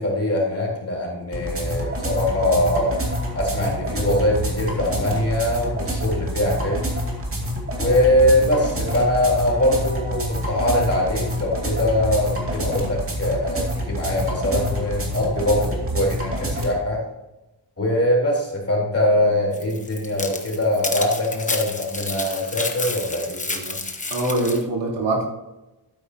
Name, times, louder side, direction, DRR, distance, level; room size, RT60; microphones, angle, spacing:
voice 1, 0.0-3.0 3.4-6.8 7.8-17.0 17.8-23.8, left 1 dB, 35° left, -2 dB, 3.5 m, -22 dB
sound 1, 1.3-16.7, equal, 30° right, 2.5 m, -27 dB
sound 2, 19.5-24.6, left 3 dB, 20° left, 1.1 m, -30 dB
voice 2, 24.1-25.2, right 2 dB, 90° right, -2 dB, 3.7 m, -23 dB
12.5 x 9.6 x 2.8 m, 1.0 s
wide cardioid pair, 175°, 42 cm